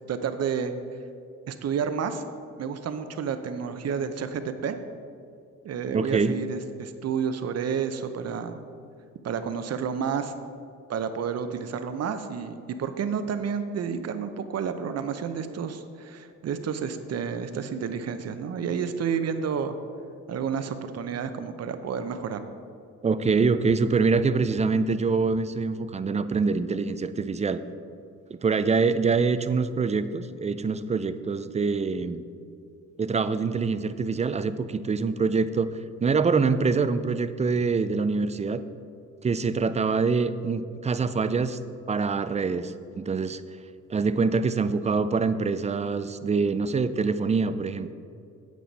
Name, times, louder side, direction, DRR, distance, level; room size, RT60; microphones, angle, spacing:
voice 1, 0.1-0.7 1.5-2.2 2.6-4.8 5.6-8.7 9.2-10.3 10.9-19.8 20.3-22.4, right 7 dB, 55° right, 9 dB, 0.8 m, -30 dB
voice 2, 5.9-6.3 23.0-27.6 28.3-32.2 33.0-35.7 36.0-38.6 39.2-41.6 41.9-43.4 43.9-47.9, right 4 dB, 25° right, 12 dB, 0.4 m, -25 dB
9.4 x 8.4 x 4.1 m, 2.5 s
cardioid pair, 90°, 30 cm